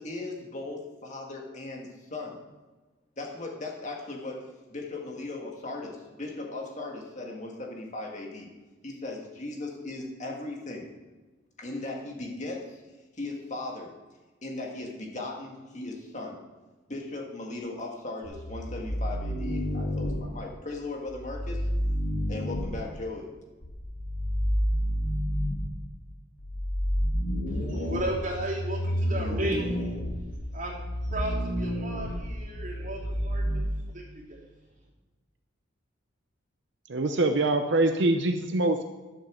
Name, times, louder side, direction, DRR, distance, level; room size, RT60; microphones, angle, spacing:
voice 1, 0.0-2.4 3.2-8.5 8.8-10.9 11.6-12.8 13.2-13.9 14.4-16.4 16.9-21.7 22.3-23.3, left 2 dB, 35° left, 0 dB, 1.8 m, -37 dB
sound 1, 18.2-20.2 21.1-22.7 23.6-25.7 26.4-33.6, equal, 70° left, 4.2 m, -30 dB
voice 2, 27.5-30.0 30.5-33.7 33.9-34.4, right 1 dB, 40° right, -4 dB, 3.2 m, -35 dB
voice 3, 36.9-38.8, right 2 dB, 60° right, 6 dB, 0.6 m, -24 dB
11.0 x 7.3 x 6.3 m, 1.2 s
head